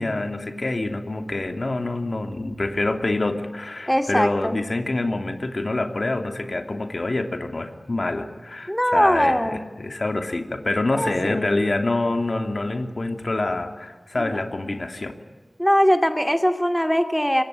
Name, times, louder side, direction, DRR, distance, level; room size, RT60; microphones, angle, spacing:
voice 1, 0.0-15.2, left 2 dB, 60° left, 6 dB, 2.8 m, -26 dB
voice 2, 3.9-4.6 8.7-9.6 11.0-11.6 14.2-14.4 15.6-17.4, equal, 5° left, 6 dB, 2.3 m, -21 dB
26.0 x 22.5 x 9.3 m, 1.3 s
wide cardioid pair, 65°, 0 cm